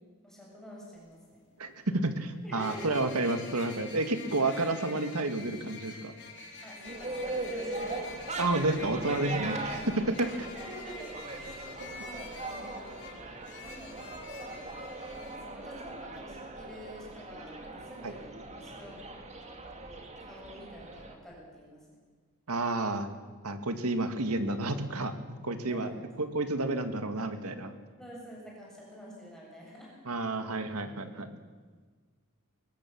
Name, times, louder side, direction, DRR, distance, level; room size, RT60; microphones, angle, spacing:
voice 1, 0.2-1.4 2.4-3.0 6.6-8.1 9.6-9.9 10.3-11.1 11.4-13.0 13.6-14.0 15.2-19.0 20.2-21.9 25.7-26.1 28.0-29.9, equal, ahead, -4 dB, 7.5 m, -48 dB
sound 1, 1.0-1.1 2.6-15.4, left 3 dB, 55° left, 4.4 m, -47 dB
voice 2, 1.6-6.1 8.4-10.5 18.0-18.1 22.5-23.1 23.4-25.9 26.2-27.7 30.1-31.4, right 2 dB, 80° right, 8 dB, 2.1 m, -30 dB
sound 2, 6.8-21.2, right 2 dB, 30° right, 2.5 m, -40 dB
22.5 x 19.0 x 7.3 m, 1.5 s
head